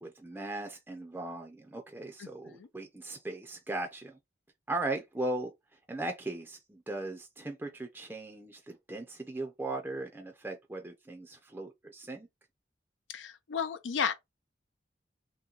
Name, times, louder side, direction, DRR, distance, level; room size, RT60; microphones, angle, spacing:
voice 1, 0.0-4.2 4.7-5.5 5.9-12.3, right 2 dB, 10° right, 0.4 m, -38 dB
voice 2, 13.1-14.1, left 6 dB, 90° left, 0.5 m, -32 dB
3.0 x 2.9 x 3.7 m
head